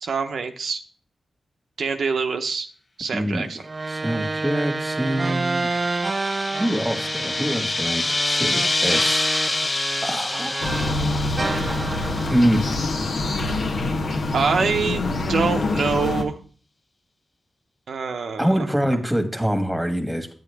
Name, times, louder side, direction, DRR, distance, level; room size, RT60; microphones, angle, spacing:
voice 1, 0.0-0.8 1.8-2.7 3.0-3.6 14.3-16.4 17.9-18.7, right 5 dB, 75° right, 5 dB, 0.7 m, -25 dB
voice 2, 3.1-3.5 3.9-5.7 6.6-9.6 10.0-11.1 12.3-12.6 18.4-20.3, equal, 5° right, 6 dB, 1.5 m, -25 dB
sound 1, 3.6-11.0 11.4-13.8, right 3 dB, 40° right, 0.3 m, -29 dB
sound 2, 4.8-13.1, left 2 dB, 30° left, 0.7 m, -27 dB
sound 3, 10.6-16.2, left 2 dB, 75° left, 1.1 m, -25 dB
8.9 x 7.7 x 3.4 m, 0.41 s
cardioid pair, 75°, 0 cm